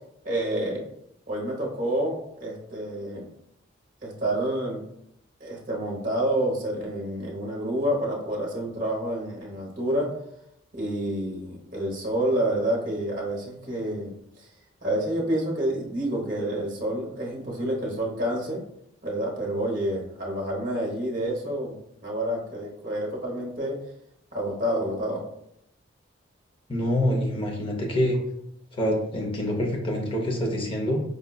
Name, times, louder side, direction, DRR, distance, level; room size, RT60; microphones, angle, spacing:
voice 1, 0.2-0.8 1.3-3.3 4.0-4.8 5.4-10.1 10.7-14.1 14.4-14.5 14.8-18.6 19.0-23.8 24.3-25.2, right 1 dB, 40° right, -1 dB, 0.8 m, -28 dB
voice 2, 26.7-28.2 28.7-31.0, equal, 25° left, 0 dB, 0.6 m, -26 dB
4.9 x 2.2 x 2.2 m, 0.78 s
head